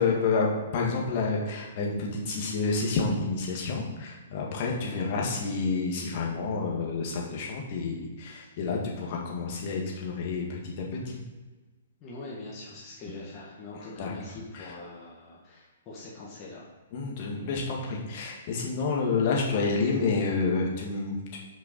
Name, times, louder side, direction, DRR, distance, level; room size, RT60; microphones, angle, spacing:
voice 1, 0.0-11.2 13.8-14.1 14.5-14.7 16.9-21.4, left 4 dB, 45° left, -2 dB, 1.9 m, -29 dB
voice 2, 4.8-5.2 12.0-16.6, left 2 dB, 30° left, -6 dB, 1.8 m, -43 dB
6.1 x 5.5 x 5.3 m, 1.2 s
hypercardioid pair, 125°, 0 cm